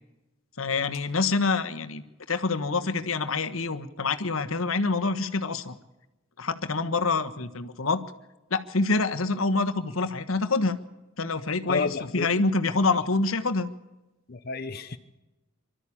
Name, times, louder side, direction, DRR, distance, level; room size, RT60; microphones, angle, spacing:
voice 1, 0.6-2.0 2.3-5.8 6.4-8.0 8.5-10.8 11.2-13.7, left 3 dB, 85° left, 9 dB, 1.4 m, -26 dB
voice 2, 11.7-12.3 14.3-15.0, left 4 dB, 50° left, 7 dB, 0.9 m, -30 dB
24.5 x 13.0 x 8.7 m, 1.0 s
head